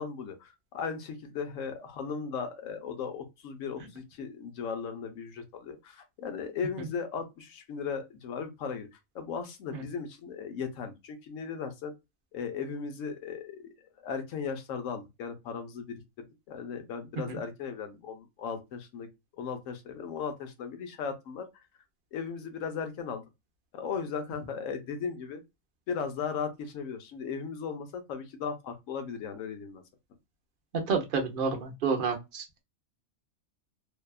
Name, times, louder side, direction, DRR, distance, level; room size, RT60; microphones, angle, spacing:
voice 1, 0.0-8.9 9.1-11.9 12.3-13.7 14.0-19.1 19.4-21.5 22.1-23.2 23.7-25.4 25.9-29.8, left 6 dB, 65° left, 0.9 m, -37 dB
voice 2, 30.9-32.4, right 5 dB, 50° right, 0.7 m, -29 dB
2.7 x 2.2 x 2.2 m
omnidirectional pair, 1.5 m